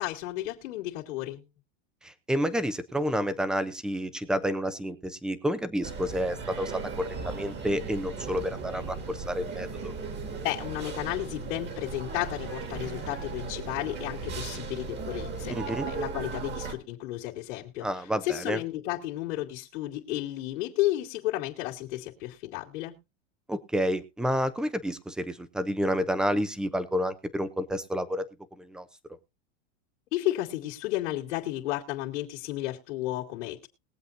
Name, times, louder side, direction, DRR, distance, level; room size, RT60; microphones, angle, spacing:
voice 1, 0.0-1.4 10.4-17.9 18.3-22.9 30.1-33.7, left 15 dB, 75° left, 2.5 m, -33 dB
voice 2, 2.0-9.9 15.5-15.9 17.8-18.6 23.5-28.3 28.6-28.9, equal, ahead, 0.7 m, -30 dB
sound 1, 5.8-16.7, right 4 dB, 30° right, 2.0 m, -37 dB
21.0 x 7.8 x 2.7 m
supercardioid pair, 150°, 37 cm